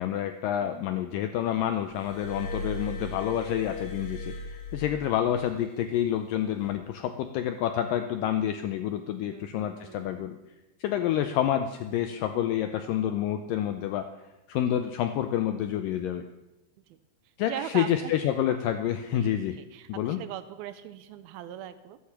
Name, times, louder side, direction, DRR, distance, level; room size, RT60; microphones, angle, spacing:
voice 1, 0.0-4.3 4.7-10.4 10.8-14.1 14.5-16.3 17.4-19.6 19.9-20.2, left 10 dB, 90° left, 8 dB, 1.9 m, -28 dB
voice 2, 0.6-1.1 9.2-10.3 17.5-18.1 19.1-22.0, right 11 dB, 80° right, 12 dB, 2.3 m, -41 dB
Glass, 1.9-5.5 6.5-6.7, left 2 dB, 50° left, 4.4 m, -37 dB
13.5 x 13.0 x 5.9 m, 1.0 s
omnidirectional pair, 4.7 m